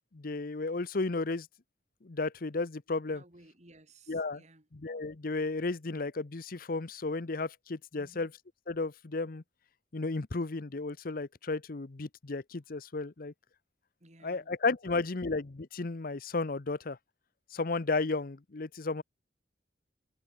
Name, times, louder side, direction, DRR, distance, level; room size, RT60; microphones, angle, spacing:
voice 1, 0.1-1.5 2.0-3.2 4.1-4.4 4.7-8.3 8.7-9.4 9.9-13.3 14.2-17.0 17.5-19.0, left 3 dB, 55° left, 0.8 m, -33 dB
voice 2, 3.1-4.7 7.9-8.3 14.0-14.5 14.9-15.2, right 2 dB, 40° right, 4.8 m, -58 dB
head